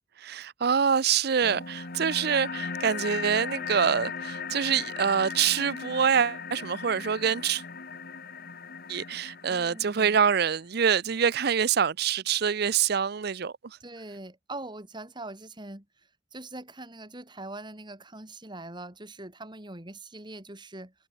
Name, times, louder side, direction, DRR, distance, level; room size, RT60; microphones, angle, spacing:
voice 1, 0.2-7.6 8.9-13.5, right 7 dB, 60° right, 0.6 m, -25 dB
sound 1, 1.4-10.4, left 5 dB, 55° left, 2.4 m, -38 dB
voice 2, 9.5-10.2 13.8-15.8 16.3-20.9, right 2 dB, 25° right, 3.4 m, -42 dB
head